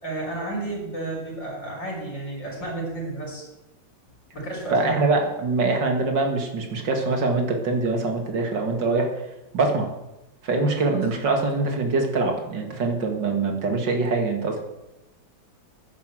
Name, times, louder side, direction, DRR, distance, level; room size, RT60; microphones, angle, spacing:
voice 1, 0.0-3.5 4.3-5.0, right 2 dB, 65° left, -3 dB, 5.0 m, -32 dB
voice 2, 4.7-9.1 9.5-9.9 10.4-14.6, right 3 dB, 65° right, 4 dB, 2.7 m, -23 dB
10.0 x 10.0 x 7.6 m, 0.95 s
omnidirectional pair, 2.1 m